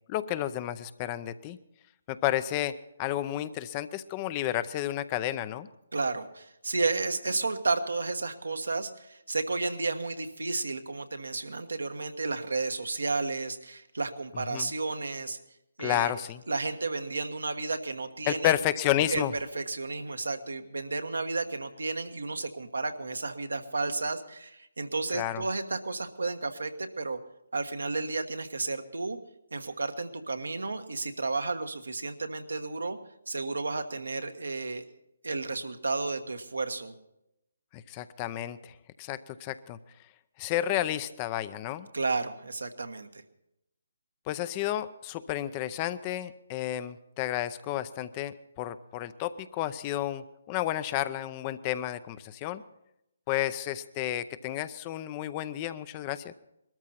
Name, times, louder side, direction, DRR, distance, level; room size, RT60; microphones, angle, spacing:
voice 1, 0.1-1.6 2.1-5.7 14.5-14.7 15.8-16.4 18.3-19.3 25.1-25.4 37.7-39.8 40.4-41.9 44.3-52.6 53.3-56.3, left 13 dB, 25° left, 14 dB, 0.6 m, -31 dB
voice 2, 5.9-15.4 15.8-16.1 16.5-18.6 19.1-19.2 19.5-27.2 27.5-29.2 29.5-33.0 33.3-34.8 35.2-36.9 41.9-43.1, right 3 dB, 75° right, 7 dB, 1.4 m, -32 dB
20.5 x 13.5 x 4.2 m, 0.83 s
figure-of-eight pair, 145°, 0 cm